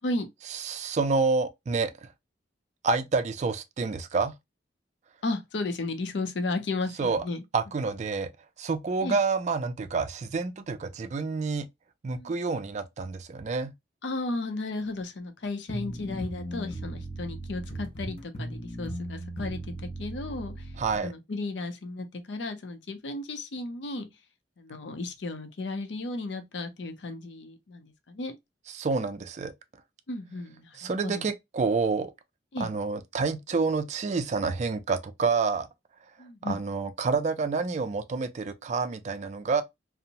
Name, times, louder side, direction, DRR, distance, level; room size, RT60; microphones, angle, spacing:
voice 1, 0.5-1.9 2.8-4.3 7.0-7.2 7.5-8.3 8.6-11.7 12.0-13.7 20.8-21.1 28.7-29.5 30.8-32.1 32.6-35.7 36.4-39.6, right 4 dB, 40° right, 0.3 m, -28 dB
voice 2, 5.2-7.4 9.0-9.2 12.1-12.4 14.0-20.7 21.0-24.1 24.6-28.3 30.1-31.3 32.5-32.7 36.2-36.6, left 2 dB, 85° left, 0.6 m, -34 dB
sound 1, 15.7-21.0, right 1 dB, 30° left, 0.6 m, -37 dB
2.8 x 2.0 x 2.5 m
head